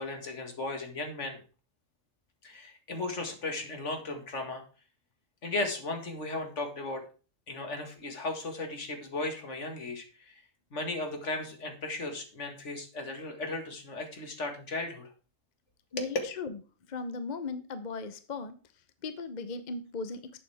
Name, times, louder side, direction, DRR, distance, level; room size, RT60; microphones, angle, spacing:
voice 1, 0.0-1.4 2.4-4.6 5.4-7.0 7.5-10.4 10.7-15.1 16.0-16.1, left 2 dB, 65° left, 5 dB, 2.2 m, -36 dB
voice 2, 15.9-16.6 16.9-20.3, left 4 dB, 40° left, 10 dB, 0.8 m, -38 dB
11.5 x 8.4 x 3.4 m, 0.36 s
omnidirectional pair, 1.3 m